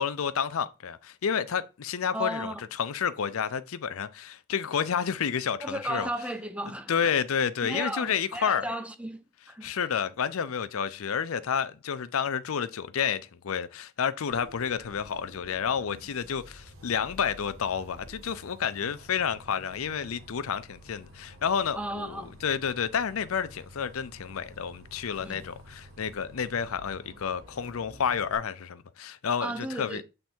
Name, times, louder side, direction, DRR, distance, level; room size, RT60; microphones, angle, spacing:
voice 1, 0.0-6.1 6.9-8.6 9.6-30.0, left 7 dB, 70° left, 0.5 m, -30 dB
voice 2, 2.1-2.6 5.6-7.1 7.6-9.9 21.7-22.4 25.2-25.5 29.4-30.0, right 1 dB, 5° right, 0.5 m, -35 dB
Bus, 14.3-28.3, equal, 70° right, 2.0 m, -50 dB
7.8 x 3.4 x 4.4 m
head